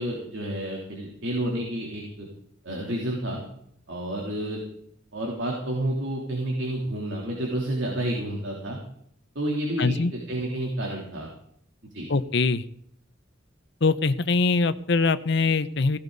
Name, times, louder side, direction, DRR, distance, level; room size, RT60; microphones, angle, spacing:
voice 1, 0.0-2.3 2.6-3.4 3.9-4.6 5.1-8.8 9.4-11.3 11.9-12.1, right 1 dB, 70° right, -1 dB, 3.3 m, -30 dB
voice 2, 9.8-10.1 12.1-12.6 13.8-16.0, left 4 dB, 65° left, 12 dB, 0.9 m, -23 dB
17.0 x 16.5 x 4.1 m, 0.70 s
head